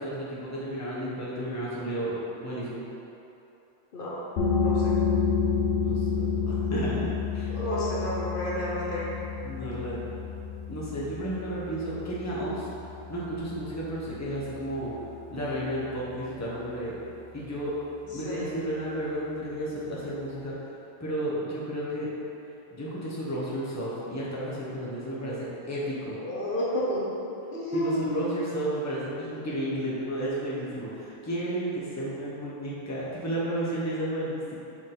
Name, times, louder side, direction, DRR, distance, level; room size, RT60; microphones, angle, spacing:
voice 1, 0.0-2.1 2.4-2.8 5.8-7.0 7.3-7.5 9.4-10.0 10.7-12.7 13.1-14.9 15.3-16.9 17.3-17.7 18.1-20.5 21.0-22.1 22.7-26.2 27.7-34.5, right 1 dB, 15° left, -7 dB, 1.0 m, -32 dB
sound 1, 4.4-15.7, left 6 dB, 85° left, 1.0 m, -30 dB
voice 2, 4.6-5.0 7.5-9.1 18.1-18.6 26.1-28.4, equal, 60° left, -6 dB, 1.1 m, -31 dB
5.9 x 4.6 x 3.8 m, 2.9 s
omnidirectional pair, 1.0 m